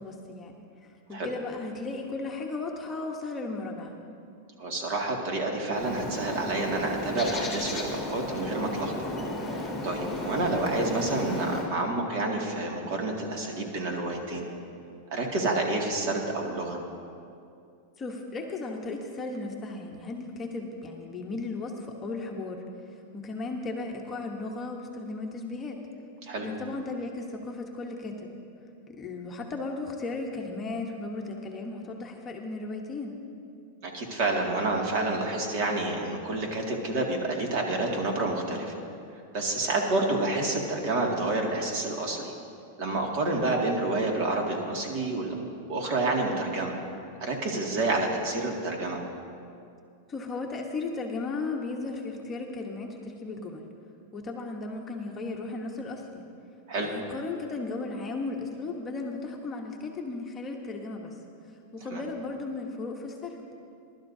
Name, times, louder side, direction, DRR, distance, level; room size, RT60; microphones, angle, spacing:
voice 1, 0.0-3.9 18.0-22.6 23.1-25.8 26.4-28.3 28.9-33.1 50.1-53.6 54.1-56.2 56.8-61.2 61.7-63.4, left 3 dB, 20° left, 1 dB, 1.0 m, -35 dB
voice 2, 4.6-9.1 9.6-14.5 15.1-16.8 26.2-26.5 33.8-38.8 39.3-42.3 42.8-45.3 45.7-46.8 47.2-49.0 56.7-56.9 61.9-62.0, right 2 dB, 50° right, 0 dB, 2.1 m, -29 dB
Bird, 5.7-11.7, left 1 dB, 5° left, 2.2 m, -34 dB
20.5 x 12.0 x 2.7 m, 2.5 s
supercardioid pair, 145°, 0 cm